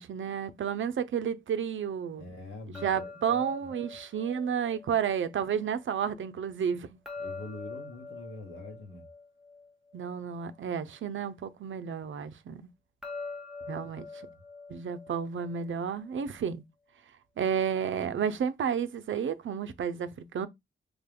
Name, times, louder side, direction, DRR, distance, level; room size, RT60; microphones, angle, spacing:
voice 1, 0.0-2.2 2.8-7.0 9.9-12.6 13.7-14.1 14.7-16.6 17.4-20.5, right 7 dB, 70° right, 0.5 m, -31 dB
voice 2, 2.2-3.7 7.2-9.1 13.8-14.4, left 2 dB, 85° left, 1.3 m, -45 dB
sound 1, 2.7-5.8 7.1-10.6 13.0-16.1, left 4 dB, ahead, 0.7 m, -44 dB
3.5 x 2.2 x 3.5 m
cardioid pair, 50°, 21 cm